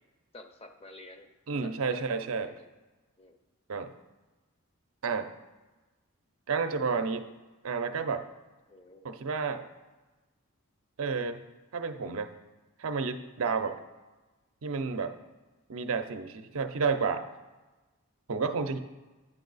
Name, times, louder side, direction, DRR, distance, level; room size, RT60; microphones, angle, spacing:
voice 1, 0.3-1.3 1.6-2.7 3.2-3.4 8.7-9.1 13.6-13.8, left 2 dB, 25° left, 6 dB, 0.6 m, -50 dB
voice 2, 1.5-2.5 3.7-3.9 5.0-5.3 6.5-7.3 7.6-8.2 9.0-9.7 11.0-11.4 11.7-12.3 12.8-13.8 14.6-15.1 15.7-17.3 18.3-18.8, right 5 dB, 70° right, 8 dB, 0.5 m, -30 dB
9.1 x 5.4 x 4.0 m, 1.2 s
head